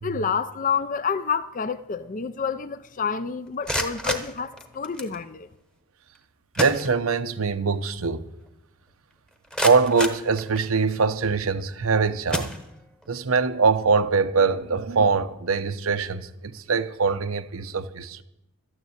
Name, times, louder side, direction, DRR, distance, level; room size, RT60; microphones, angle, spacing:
voice 1, 0.0-5.5, left 6 dB, 35° left, 0.5 m, -28 dB
sound 1, 3.5-5.2 6.1-6.2 6.5-7.4 7.8-7.9 8.5-8.6 9.1-11.0 11.6-11.8 12.3-13.1, equal, 5° left, 1.0 m, -31 dB
voice 2, 6.6-8.2 9.6-12.5 13.1-18.2, right 4 dB, 70° right, 0.8 m, -23 dB
12.5 x 9.7 x 8.0 m
head